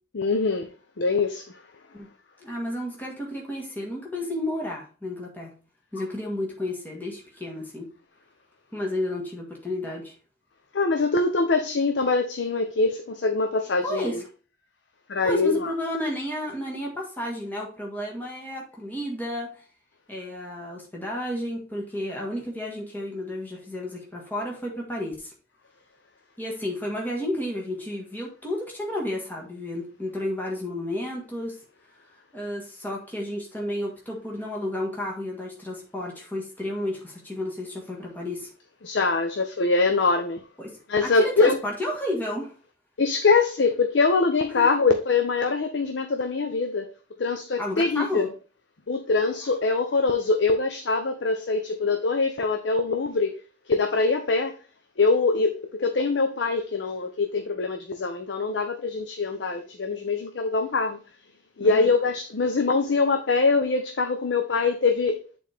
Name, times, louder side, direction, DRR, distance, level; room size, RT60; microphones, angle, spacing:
voice 1, 0.1-0.7 1.0-1.6 10.7-14.2 15.1-15.7 38.8-40.4 40.9-41.6 43.0-46.9 47.2-48.3 48.9-53.4 53.7-54.6 55.0-61.0 61.6-65.2, left 3 dB, 80° left, 0.7 m, -23 dB
voice 2, 2.4-5.5 5.9-7.9 8.7-10.1 13.8-14.2 15.2-19.6 20.1-25.3 26.4-31.6 32.3-38.5 40.6-40.7 41.0-42.5 44.5-44.7 47.6-48.3 61.6-61.9, left 1 dB, 10° left, 1.7 m, -32 dB
8.5 x 4.3 x 3.5 m
head